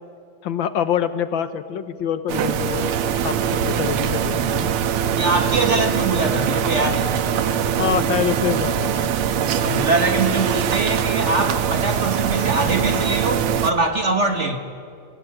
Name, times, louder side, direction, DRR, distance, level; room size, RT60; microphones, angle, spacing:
voice 1, 0.4-2.9 3.2-4.7 7.8-9.1, left 9 dB, 70° left, 12 dB, 1.6 m, -25 dB
sound 1, 2.3-13.7, right 8 dB, 85° right, 1.9 m, -22 dB
voice 2, 5.1-7.1 9.6-14.6, right 3 dB, 35° right, 6 dB, 1.6 m, -22 dB
26.5 x 17.5 x 8.8 m, 2.5 s
omnidirectional pair, 2.4 m